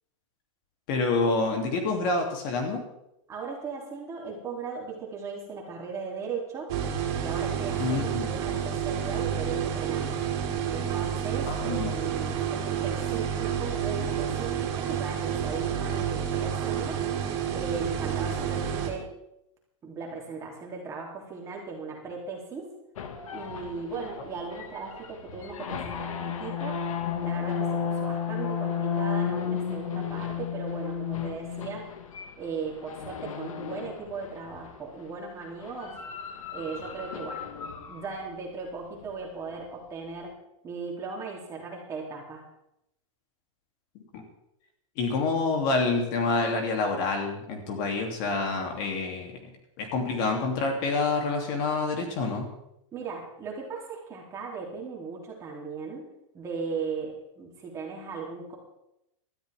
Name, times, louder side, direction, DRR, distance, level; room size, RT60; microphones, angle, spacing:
voice 1, 0.9-2.8 7.8-8.3 11.5-11.9 44.1-44.2 45.0-49.4 49.8-52.5, left 3 dB, 40° left, 2 dB, 2.9 m, -27 dB
voice 2, 3.3-6.7 7.2-10.3 10.6-17.1 17.5-19.1 19.8-22.7 23.3-26.8 27.2-31.9 32.4-36.0 36.5-37.4 37.9-40.3 40.6-42.4 52.9-56.0 56.3-58.6, right 4 dB, 15° right, -1 dB, 3.0 m, -37 dB
sound 1, 6.7-18.9, right 8 dB, 45° right, 3.6 m, -29 dB
sound 2, 23.0-34.8 35.6-38.3, left 7 dB, 80° left, 1.9 m, -33 dB
19.0 x 13.0 x 3.6 m, 0.84 s
supercardioid pair, 165°, 17 cm